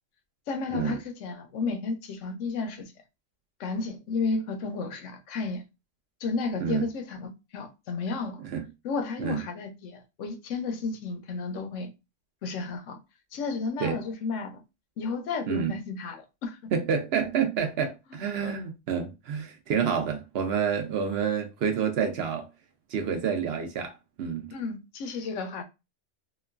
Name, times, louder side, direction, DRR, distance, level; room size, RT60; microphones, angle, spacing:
voice 1, 0.5-2.9 3.6-5.6 6.2-8.4 8.8-11.9 12.4-13.0 13.3-14.6 15.0-16.7 18.4-18.6 24.5-25.6, left 4 dB, 85° left, 1.0 m, -32 dB
voice 2, 16.7-22.5 22.9-24.5, right 7 dB, 65° right, 0.8 m, -28 dB
2.9 x 2.2 x 2.3 m
omnidirectional pair, 1.2 m